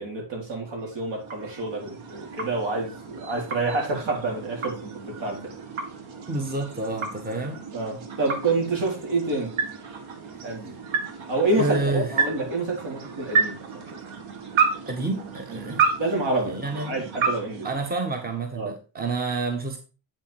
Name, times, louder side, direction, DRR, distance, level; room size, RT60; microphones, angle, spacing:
voice 1, 0.0-5.5 7.7-9.5 10.4-10.7 11.3-13.6 13.9-14.0 15.5-17.7 18.6-18.7, right 2 dB, 65° right, 0 dB, 4.1 m, -28 dB
sound 1, 0.7-18.5, right 5 dB, 80° right, 1.8 m, -31 dB
voice 2, 6.3-7.6 10.3-10.4 11.5-12.1 14.9-15.9 16.4-17.0 17.6-19.8, right 3 dB, 20° right, 5 dB, 1.5 m, -29 dB
8.7 x 5.6 x 4.3 m, 0.34 s
cardioid pair, 90°, 47 cm